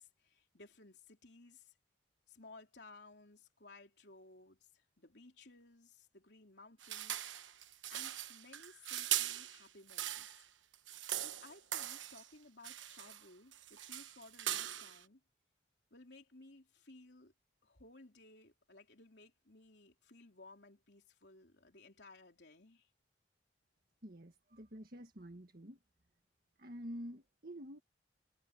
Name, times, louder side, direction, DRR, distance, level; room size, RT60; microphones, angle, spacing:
voice 1, 0.0-1.7 2.3-7.3 7.9-10.4 11.2-15.2 15.9-17.3 17.6-22.9, left 2 dB, 65° left, 3.5 m, -59 dB
sound 1, 6.8-10.4 10.7-12.3 12.6-13.2 13.5-15.0, right 12 dB, 90° right, 1.2 m, -40 dB
voice 2, 24.0-25.8 26.6-27.8, equal, 50° right, 1.7 m, -48 dB
head